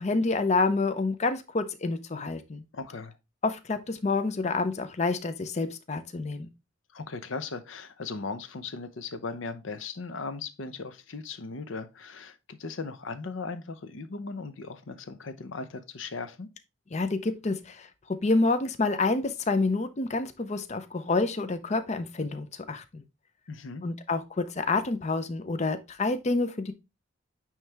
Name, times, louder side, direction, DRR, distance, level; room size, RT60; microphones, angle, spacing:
voice 1, 0.0-2.6 3.4-6.5 16.9-23.0 23.8-26.7, left 3 dB, 35° left, 0.5 m, -28 dB
voice 2, 2.7-3.2 6.9-16.5 23.5-23.8, left 4 dB, 75° left, 0.7 m, -38 dB
9.0 x 3.2 x 3.3 m
head